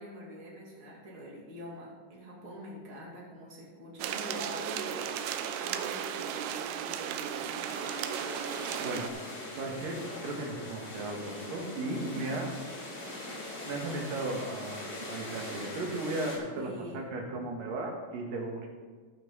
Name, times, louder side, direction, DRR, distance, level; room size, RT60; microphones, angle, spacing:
voice 1, 0.0-7.7 12.1-12.4 16.5-17.1, equal, 35° right, -4 dB, 2.8 m, -45 dB
sound 1, 4.0-9.1, right 9 dB, 80° right, 2.7 m, -35 dB
sound 2, 7.6-16.4, left 1 dB, 35° left, 4.3 m, -42 dB
voice 2, 9.6-12.5 13.7-18.7, right 2 dB, 60° right, 0 dB, 3.0 m, -36 dB
15.0 x 5.9 x 5.6 m, 1.5 s
omnidirectional pair, 4.9 m